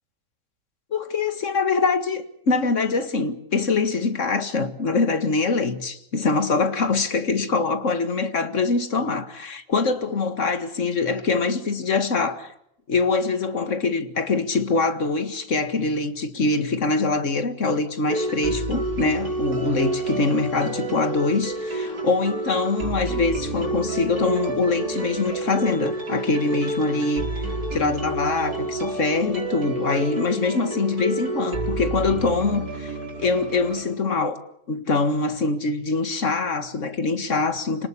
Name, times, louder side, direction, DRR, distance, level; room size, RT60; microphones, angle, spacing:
voice 1, 0.9-12.5 12.9-27.4 27.7-34.4 34.7-37.9, left 3 dB, 50° left, 2.2 m, -24 dB
sound 1, 18.1-33.8, right 2 dB, 85° right, 6.1 m, -29 dB
28.0 x 19.0 x 8.7 m
omnidirectional pair, 1.6 m